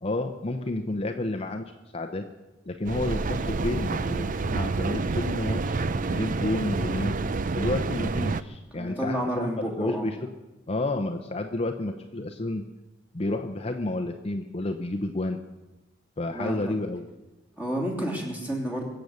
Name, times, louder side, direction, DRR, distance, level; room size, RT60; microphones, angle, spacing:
voice 1, 0.0-2.2 2.7-5.8 6.1-7.2 7.5-9.5 9.8-10.3 10.7-12.6 13.1-15.4 16.2-17.0, left 2 dB, 30° left, 4 dB, 0.8 m, -30 dB
Mechanical fan, 2.9-8.4, right 3 dB, 45° right, 0.5 m, -28 dB
voice 2, 8.8-10.1 16.3-16.6 17.6-18.9, equal, 10° right, -2 dB, 3.1 m, -30 dB
23.5 x 8.0 x 6.6 m, 1.1 s
head